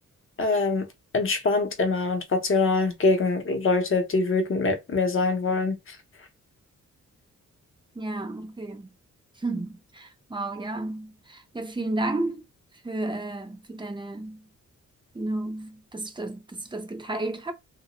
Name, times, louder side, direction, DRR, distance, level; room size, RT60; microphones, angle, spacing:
voice 1, 0.4-0.9 1.1-5.8, left 3 dB, 45° left, 0.7 m, -24 dB
voice 2, 8.0-8.9 9.4-12.4 12.8-14.4 15.1-17.5, right 2 dB, 15° right, 0.5 m, -32 dB
2.2 x 2.0 x 2.9 m
wide cardioid pair, 130°, 31 cm